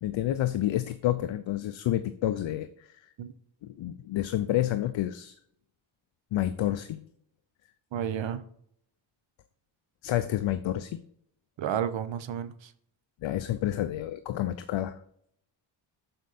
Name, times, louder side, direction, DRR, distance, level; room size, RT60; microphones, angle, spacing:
voice 1, 0.0-3.1 3.6-5.4 6.3-7.0 10.0-11.0 13.2-15.0, left 13 dB, 75° left, 11 dB, 0.6 m, -29 dB
voice 2, 7.9-8.4 11.6-12.7, right 9 dB, 75° right, 12 dB, 0.9 m, -31 dB
8.0 x 5.2 x 4.1 m, 0.66 s
wide cardioid pair, 155°, 46 cm